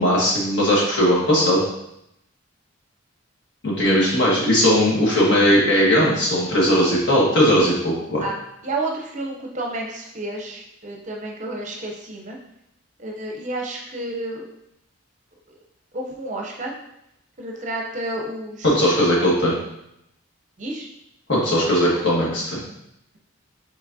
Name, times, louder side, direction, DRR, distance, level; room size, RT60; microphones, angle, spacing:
voice 1, 0.0-1.6 3.6-8.2 18.6-19.5 21.3-22.6, equal, 55° left, -5 dB, 1.5 m, -18 dB
voice 2, 8.6-12.4 13.0-14.4 15.9-16.7 17.4-18.7 19.0-19.4 20.6-20.9, right 2 dB, 35° right, 0 dB, 0.7 m, -30 dB
4.9 x 4.0 x 2.7 m, 0.80 s
head